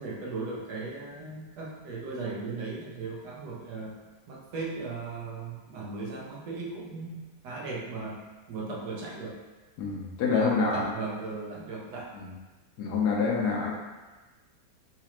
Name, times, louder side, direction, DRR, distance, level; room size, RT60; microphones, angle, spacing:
voice 1, 0.0-4.0 4.3-8.2 8.5-9.4 10.2-12.1, right 3 dB, 90° right, -2 dB, 1.3 m, -37 dB
voice 2, 9.8-10.9 12.1-12.3 12.8-13.7, left 5 dB, 75° left, -2 dB, 1.2 m, -27 dB
4.0 x 2.4 x 2.9 m, 1.2 s
omnidirectional pair, 1.7 m